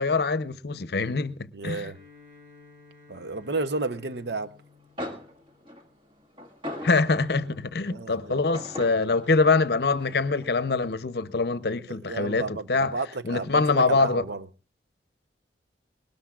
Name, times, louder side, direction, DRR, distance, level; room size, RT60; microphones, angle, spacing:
voice 1, 0.0-1.9 6.8-13.0 13.2-14.2, left 3 dB, 65° left, 0.7 m, -24 dB
voice 2, 1.5-2.0 3.1-4.5 7.8-8.4 11.9-14.5, right 3 dB, 70° right, 0.7 m, -32 dB
Bowed string instrument, 1.8-6.1, left 4 dB, 45° right, 4.4 m, -54 dB
sound 1, 4.7-4.8 5.0-7.6 8.5-10.5, left 1 dB, 30° right, 1.8 m, -40 dB
21.0 x 19.0 x 2.4 m
head